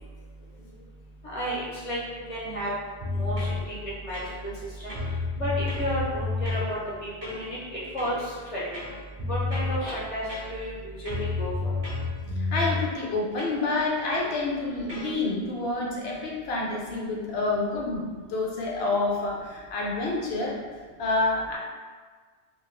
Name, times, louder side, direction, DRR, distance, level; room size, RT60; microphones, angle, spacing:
voice 1, 1.2-2.0 2.3-2.7 3.2-3.4 3.7-4.5 4.8-5.0 5.4-8.2 8.5-8.7 9.3-10.2 10.5-11.7, equal, 45° left, -7 dB, 0.5 m, -32 dB
sound 1, 3.0-3.6 4.1-4.6 4.9-6.7 7.2-7.5 8.0-8.2 8.7-9.8 10.3-10.8 11.1-12.9 13.4-13.6 14.1-14.4 14.9-15.1, left 3 dB, 40° right, 0.5 m, -30 dB
voice 2, 12.5-20.5 21.0-21.6, left 3 dB, 70° left, -2 dB, 0.8 m, -28 dB
2.2 x 2.2 x 3.1 m, 1.5 s
omnidirectional pair, 1.2 m